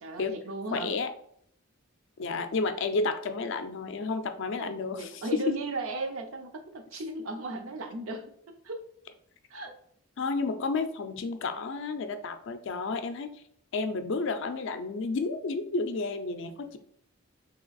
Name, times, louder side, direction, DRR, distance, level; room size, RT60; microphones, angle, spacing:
voice 1, 0.0-1.0 4.6-8.8 9.5-9.7, right 2 dB, 70° right, 5 dB, 0.6 m, -36 dB
voice 2, 0.7-1.1 2.2-5.6 10.2-13.3 13.7-16.8, left 4 dB, 55° left, 8 dB, 0.4 m, -31 dB
3.3 x 2.9 x 3.9 m, 0.67 s
head